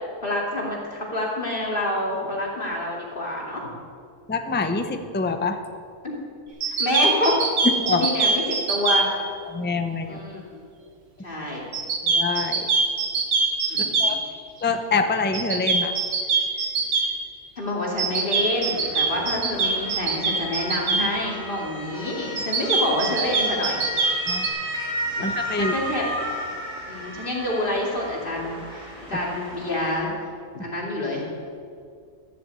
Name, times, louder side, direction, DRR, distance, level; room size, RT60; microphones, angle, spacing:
voice 1, 0.2-3.7 6.0-6.2 6.8-7.3 7.9-9.1 10.0-10.6 11.2-11.6 13.7-14.1 17.6-23.8 25.6-26.0 26.9-30.1 30.5-31.3, left 1 dB, 35° left, -2 dB, 2.7 m, -27 dB
voice 2, 4.3-5.6 7.6-8.1 9.5-10.2 12.0-12.7 14.0-14.2 14.6-15.9 24.3-24.5 25.2-25.7, left 4 dB, 15° left, 7 dB, 0.4 m, -25 dB
sound 1, 6.6-9.0 11.7-14.1 15.3-17.1 18.0-21.0 22.4-24.5, right 4 dB, 85° right, 1.9 m, -22 dB
Motor vehicle (road) / Siren, 18.2-30.0, equal, 60° right, 3.4 m, -34 dB
13.5 x 7.3 x 8.3 m, 2.2 s
omnidirectional pair, 1.6 m